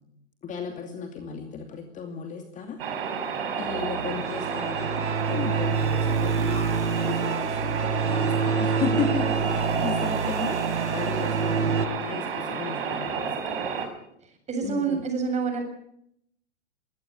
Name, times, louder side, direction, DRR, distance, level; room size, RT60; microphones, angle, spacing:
voice 1, 0.4-2.8 3.5-4.9 5.3-10.6 10.9-13.9 14.6-15.1, left 6 dB, 20° left, 5 dB, 2.6 m, -34 dB
sound 1, 2.8-13.9, right 6 dB, 55° right, 5.2 m, -31 dB
sound 2, 3.6-11.9, right 5 dB, 80° right, 1.5 m, -27 dB
voice 2, 14.5-15.6, right 5 dB, 20° right, 5 dB, 7.0 m, -27 dB
22.5 x 17.5 x 8.5 m, 0.74 s
figure-of-eight pair, 105°, 34 cm